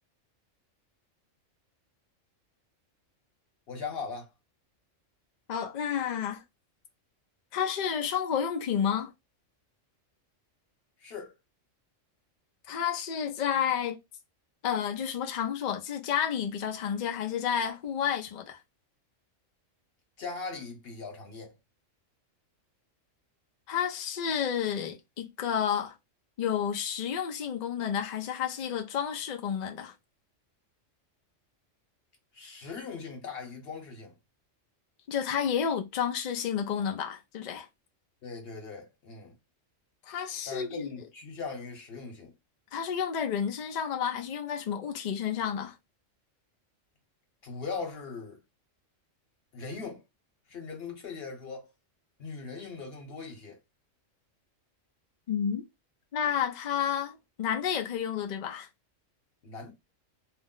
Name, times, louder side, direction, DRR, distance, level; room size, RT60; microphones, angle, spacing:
voice 1, 3.7-4.3 11.0-11.3 20.2-21.6 32.3-34.2 38.2-39.3 40.4-42.3 47.4-48.4 49.5-50.0 50.5-51.7 52.2-53.6 59.4-59.7, left 4 dB, 55° left, 1.1 m, -39 dB
voice 2, 5.5-6.4 7.5-9.1 12.7-14.0 14.6-18.6 23.7-26.0 26.4-29.9 35.1-37.7 40.1-40.9 42.7-45.8 55.3-55.6 56.1-58.7, left 8 dB, 75° left, 0.4 m, -30 dB
2.6 x 2.1 x 3.7 m
omnidirectional pair, 1.3 m